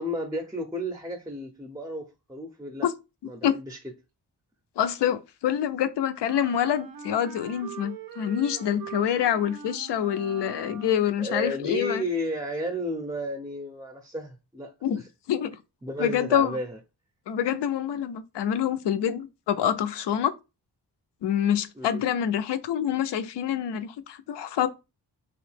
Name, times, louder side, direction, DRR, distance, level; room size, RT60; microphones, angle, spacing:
voice 1, 0.0-2.9 3.2-3.8 11.2-14.7 15.8-16.8 21.8-22.0, equal, 10° right, 0.5 m, -32 dB
voice 2, 4.8-12.0 14.8-15.6 16.0-16.6 17.3-20.3 21.2-24.7, left 9 dB, 85° left, 0.5 m, -26 dB
Wind instrument woodwind instrument, 6.2-11.3, right 6 dB, 55° right, 0.5 m, -42 dB
3.0 x 2.7 x 3.3 m
wide cardioid pair, 105°, 41 cm